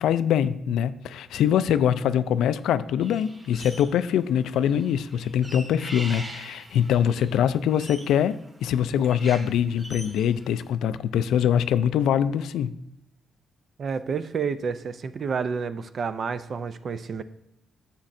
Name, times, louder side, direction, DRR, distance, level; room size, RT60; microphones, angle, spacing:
voice 1, 0.0-12.7, left 9 dB, 90° left, 14 dB, 0.4 m, -23 dB
sound 1, 3.0-4.1 4.4-10.6, right 1 dB, 20° right, 2.5 m, -43 dB
voice 2, 13.8-17.2, right 5 dB, 50° right, 12 dB, 0.5 m, -29 dB
11.5 x 7.3 x 2.6 m, 0.82 s
cardioid pair, 115°, 0 cm